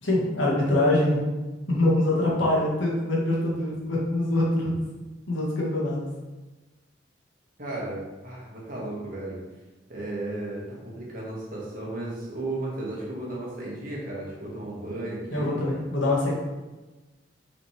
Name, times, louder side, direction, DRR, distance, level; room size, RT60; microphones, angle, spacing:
voice 1, 0.0-1.2 1.7-4.7 5.3-6.0 15.3-16.3, left 1 dB, 80° left, -4 dB, 1.9 m, -24 dB
voice 2, 7.6-9.4 9.9-15.5, right 2 dB, 45° right, -5 dB, 1.9 m, -34 dB
6.0 x 5.0 x 3.4 m, 1.2 s
head